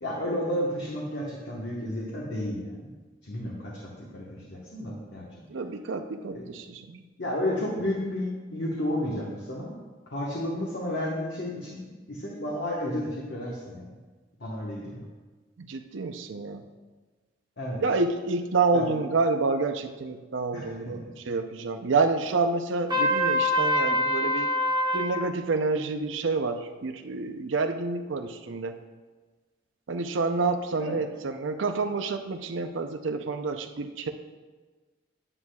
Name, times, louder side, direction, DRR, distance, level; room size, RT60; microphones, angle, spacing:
voice 1, 0.0-2.9 3.2-5.2 6.3-6.4 7.2-9.7 10.1-11.8 12.1-13.9 14.4-15.0 17.6-17.8 18.7-18.9 20.5-20.7 30.8-30.9, left 1 dB, 65° left, -4 dB, 1.3 m, -32 dB
voice 2, 5.5-7.0 15.6-16.6 17.8-24.5 24.9-28.8 29.9-34.1, right 3 dB, 90° right, 7 dB, 0.6 m, -28 dB
Trumpet, 22.9-25.1, left 1 dB, 20° right, 1.3 m, -24 dB
9.7 x 9.5 x 2.3 m, 1.3 s
head